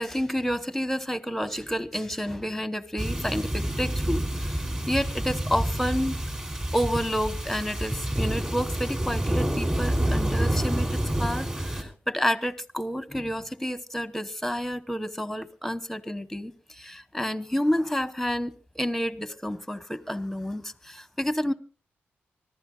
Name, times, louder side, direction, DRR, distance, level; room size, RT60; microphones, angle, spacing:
voice 1, 0.0-6.2 6.7-21.5, equal, 5° left, 13 dB, 1.0 m, -30 dB
sound 1, 3.0-11.8, right 1 dB, 20° right, 3.2 m, -28 dB
25.0 x 14.5 x 2.4 m, 0.38 s
cardioid pair, 85°, 4 cm